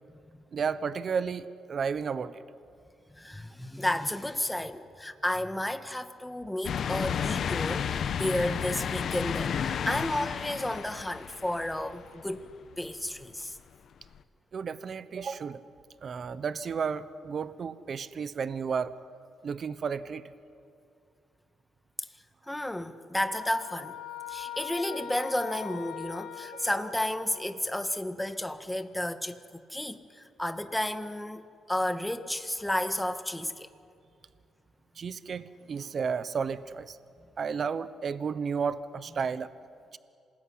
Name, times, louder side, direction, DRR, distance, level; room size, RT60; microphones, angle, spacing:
voice 1, 0.5-2.4 14.5-15.6 16.0-18.9 19.4-20.2 35.0-37.0 37.4-39.5, right 6 dB, 50° right, 14 dB, 1.0 m, -32 dB
voice 2, 3.2-12.5 12.8-13.6 22.0-22.1 22.5-24.0 24.3-29.4 29.7-33.7, left 1 dB, 10° left, 9 dB, 1.6 m, -32 dB
sound 1, 6.6-12.2 12.7-12.8 14.1-14.2, left 7 dB, 60° left, 1.0 m, -32 dB
sound 2, 23.3-27.7, left 10 dB, 85° left, 1.9 m, -41 dB
26.5 x 20.0 x 9.9 m, 2.4 s
cardioid pair, 90°, 0 cm